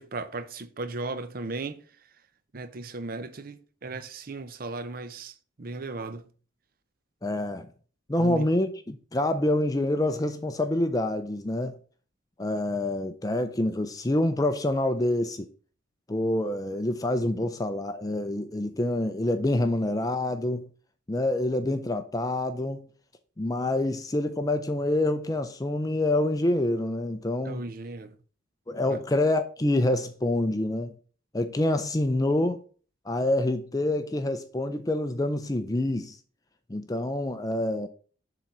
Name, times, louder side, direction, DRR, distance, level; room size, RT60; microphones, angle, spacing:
voice 1, 0.0-1.8 2.5-6.3 8.2-8.5 27.4-28.2 28.9-29.0, right 3 dB, 45° right, 0.6 m, -36 dB
voice 2, 7.2-7.7 8.1-11.8 12.4-15.5 16.1-20.7 21.1-22.9 23.4-27.6 28.7-30.9 31.3-32.6 33.1-36.2 36.7-37.9, left 1 dB, 15° left, 0.5 m, -26 dB
7.3 x 3.9 x 5.9 m
head